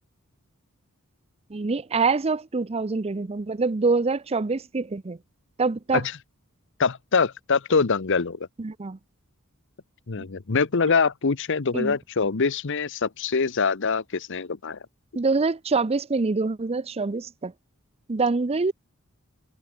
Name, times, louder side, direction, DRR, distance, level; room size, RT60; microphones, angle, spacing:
voice 1, 1.5-5.2 5.6-6.0 8.6-9.0 11.7-12.0 15.2-17.5 18.1-18.7, right 4 dB, 30° right, 0.5 m, -25 dB
voice 2, 6.8-8.5 10.1-14.8, left 5 dB, 60° left, 0.8 m, -24 dB
head